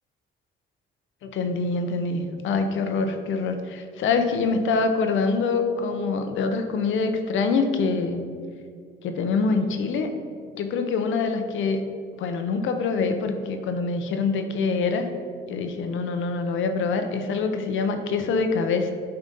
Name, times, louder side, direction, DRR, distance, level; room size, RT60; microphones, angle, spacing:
voice 1, 1.2-8.2 9.0-10.1 10.6-11.8 12.2-15.1 15.5-18.9, left 4 dB, 75° left, 6 dB, 0.8 m, -25 dB
9.4 x 4.0 x 5.5 m, 2.1 s
cardioid pair, 90°, 20 cm